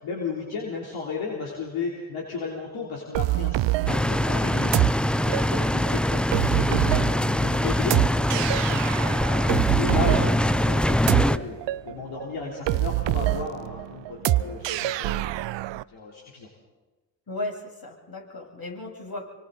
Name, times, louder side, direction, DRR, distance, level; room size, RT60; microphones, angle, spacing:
voice 1, 0.0-4.7 5.2-11.6 11.8-15.4 15.7-16.5, left 4 dB, 70° left, -3 dB, 3.5 m, -34 dB
sound 1, 3.1-15.8, right 16 dB, 60° right, 0.7 m, -26 dB
sound 2, 3.9-11.4, left 1 dB, ahead, 0.6 m, -23 dB
voice 2, 4.4-4.8 5.2-5.9 11.3-11.4 17.3-19.2, left 2 dB, 45° left, 0 dB, 7.6 m, -37 dB
26.5 x 24.5 x 4.1 m, 1.2 s
hypercardioid pair, 40°, 49 cm